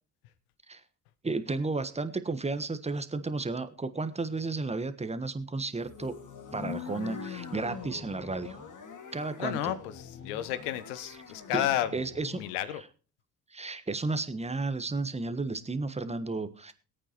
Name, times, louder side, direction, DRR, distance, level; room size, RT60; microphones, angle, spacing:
voice 1, 1.2-6.1 6.5-8.6 9.1-9.7 11.0-11.2 11.5-11.7 11.9-12.4 12.7-12.9 13.5-16.7, right 3 dB, 15° right, 12 dB, 1.3 m, -33 dB
sound 1, 5.8-12.6, left 5 dB, 40° left, 2.1 m, -43 dB
voice 2, 9.4-9.9 10.2-11.9 12.4-12.8, left 12 dB, 70° left, 13 dB, 1.2 m, -31 dB
22.0 x 8.8 x 3.0 m, 0.36 s
figure-of-eight pair, 50°, 47 cm